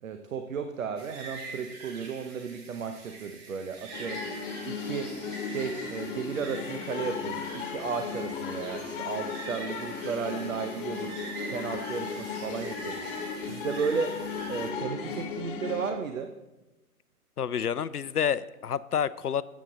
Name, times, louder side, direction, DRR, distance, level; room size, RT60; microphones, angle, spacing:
voice 1, 0.0-4.3 4.7-5.1 5.4-11.1 11.5-13.0 13.4-14.2 14.5-16.3, right 6 dB, 60° right, 7 dB, 0.9 m, -34 dB
sound 1, 1.0-14.7, right 3 dB, 30° right, 1.7 m, -45 dB
sound 2, 3.9-15.9, left 5 dB, 35° left, 1.7 m, -36 dB
voice 2, 17.4-19.4, left 8 dB, 85° left, 18 dB, 0.6 m, -29 dB
14.0 x 8.3 x 3.9 m, 1.0 s
figure-of-eight pair, 120°, 45 cm